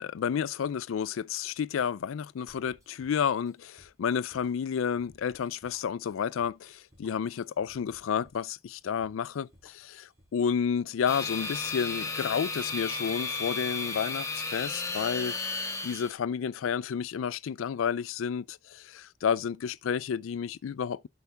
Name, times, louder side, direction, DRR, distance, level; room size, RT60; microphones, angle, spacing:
voice 1, 0.0-15.3 15.8-21.1, left 7 dB, 90° left, 0.4 m, -31 dB
sound 1, 2.5-10.4, equal, 15° right, 4.2 m, -61 dB
sound 2, 11.1-16.1, left 3 dB, 15° left, 1.4 m, -34 dB
8.0 x 5.6 x 3.3 m
head